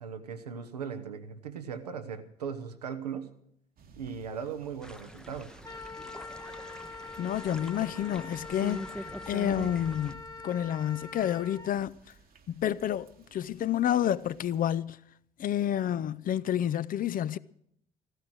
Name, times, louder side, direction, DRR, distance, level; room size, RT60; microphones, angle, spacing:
voice 1, 0.0-3.3 4.0-5.6, right 7 dB, 90° right, 0.8 m, -38 dB
sound 1, 3.8-14.8, right 4 dB, 50° right, 1.2 m, -55 dB
sound 2, 4.8-10.1, equal, 5° left, 0.7 m, -43 dB
Wind instrument woodwind instrument, 5.6-11.7, left 3 dB, 20° left, 1.1 m, -44 dB
voice 2, 7.2-12.0 12.5-15.0 15.4-17.4, left 10 dB, 45° left, 0.5 m, -29 dB
14.5 x 12.5 x 6.2 m
figure-of-eight pair, 45°, 20 cm